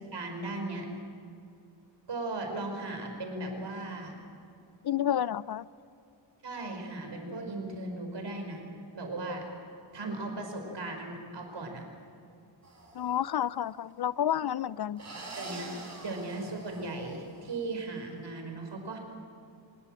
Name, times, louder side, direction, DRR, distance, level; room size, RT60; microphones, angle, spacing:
voice 1, 0.1-0.9 2.1-4.2 6.4-8.6 8.9-9.4 9.9-11.8 15.3-15.7 16.0-19.0, right 2 dB, 65° right, 3 dB, 5.2 m, -37 dB
voice 2, 4.8-5.7 12.9-15.0, left 10 dB, 60° left, 19 dB, 0.5 m, -30 dB
sound 1, 12.6-13.4 15.0-17.6, right 2 dB, 35° right, 5.7 m, -45 dB
24.0 x 21.5 x 7.7 m, 2.5 s
wide cardioid pair, 130°, 46 cm